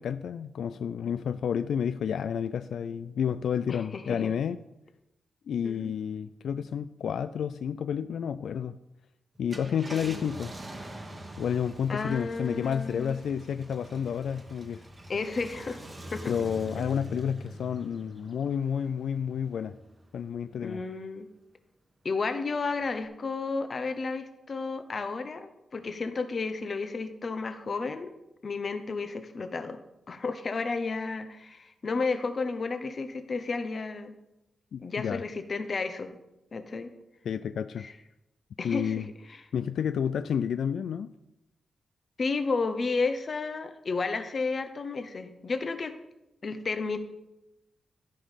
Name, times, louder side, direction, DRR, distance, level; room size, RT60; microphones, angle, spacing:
voice 1, 0.0-4.6 5.5-8.8 9.4-10.5 11.4-14.8 16.3-19.8 20.1-20.8 34.7-35.2 37.3-37.9 38.6-39.1 39.5-41.1, left 8 dB, 75° left, 12 dB, 0.3 m, -30 dB
voice 2, 3.7-4.3 5.6-5.9 9.7-10.2 11.9-13.2 15.1-15.8 16.1-16.3 16.8-16.9 20.6-21.3 22.0-28.1 28.4-29.8 30.1-34.1 34.8-36.2 36.5-36.9 37.8-37.9 38.6-39.4 42.2-45.9 46.4-47.0, left 4 dB, 35° left, 9 dB, 0.8 m, -32 dB
Car, 9.4-20.2 20.7-20.8 22.8-23.1, equal, 20° right, 1.1 m, -44 dB
13.5 x 5.3 x 5.7 m, 0.92 s
wide cardioid pair, 180°, 0 cm